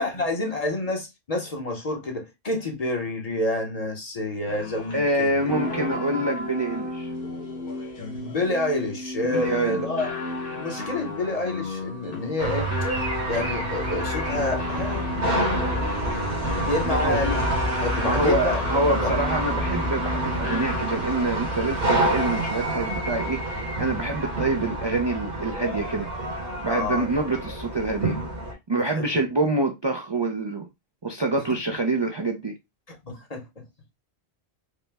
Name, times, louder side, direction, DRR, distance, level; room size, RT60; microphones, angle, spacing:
voice 1, 0.0-5.4 8.0-10.1 10.6-12.7 13.3-16.4 16.7-17.4 17.8-18.6 19.0-19.1 26.7-27.1 28.9-29.1 33.0-33.5, left 2 dB, 40° left, 0.9 m, -28 dB
sound 1, 4.5-21.2, left 2 dB, 60° left, 1.2 m, -33 dB
voice 2, 4.9-7.1 9.2-9.8 16.8-17.2 18.0-26.1 26.6-28.2 28.7-30.7 31.0-32.5, right 2 dB, 35° right, 0.4 m, -26 dB
sound 2, 12.4-28.5, right 1 dB, 65° right, 1.7 m, -28 dB
4.9 x 2.1 x 3.4 m
omnidirectional pair, 1.1 m